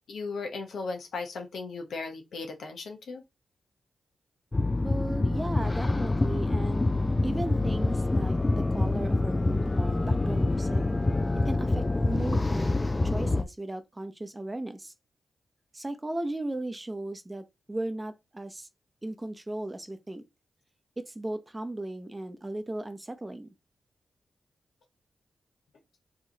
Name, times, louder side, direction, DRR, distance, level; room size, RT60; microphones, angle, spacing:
voice 1, 0.1-3.2, left 4 dB, 80° left, 0.9 m, -36 dB
sound 1, 4.5-13.4, left 2 dB, 25° left, 0.4 m, -26 dB
voice 2, 4.8-6.9 7.2-10.8 11.5-14.9 15.7-18.7 19.0-20.2 21.0-23.5, right 1 dB, 20° right, 0.7 m, -36 dB
4.7 x 3.0 x 2.8 m
cardioid pair, 70°, 0 cm